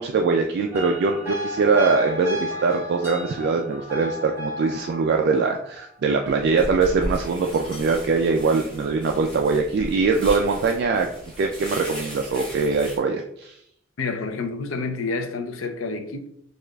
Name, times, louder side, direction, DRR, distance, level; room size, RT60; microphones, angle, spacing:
voice 1, 0.0-11.1 11.4-13.6, right 4 dB, 55° right, 0.3 m, -22 dB
sound 1, 0.7-7.9 10.3-10.6, left 1 dB, 15° right, 1.0 m, -35 dB
sound 2, 6.2-13.0, equal, 5° left, 1.4 m, -36 dB
voice 2, 14.0-16.3, left 3 dB, 85° left, 0.5 m, -29 dB
6.4 x 2.4 x 2.3 m
head